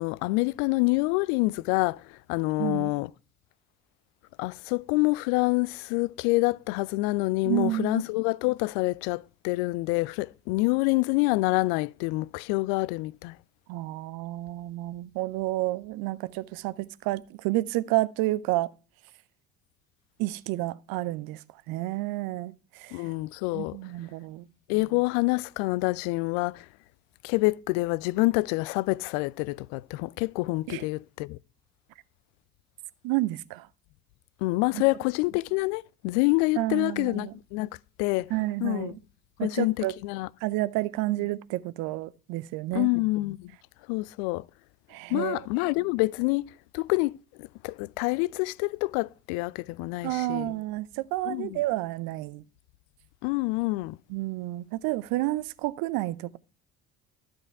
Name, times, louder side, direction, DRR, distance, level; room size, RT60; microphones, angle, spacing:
voice 1, 0.0-3.1 4.4-13.4 22.9-23.8 24.7-26.7 27.2-31.4 34.4-37.7 38.0-38.3 38.6-38.9 39.4-40.3 42.7-43.5 43.9-44.4 45.1-50.5 51.3-51.6 53.2-54.0, left 23 dB, 60° left, 0.5 m, -27 dB
voice 2, 2.6-2.9 7.4-8.0 13.7-18.7 20.2-23.1 23.5-24.5 30.7-30.8 33.0-33.7 34.7-34.8 36.6-37.3 38.3-39.0 39.4-39.9 40.4-42.9 44.9-45.5 50.0-52.4 54.1-56.4, right 17 dB, 55° right, 0.7 m, -30 dB
12.0 x 7.7 x 4.7 m
figure-of-eight pair, 55°, 42 cm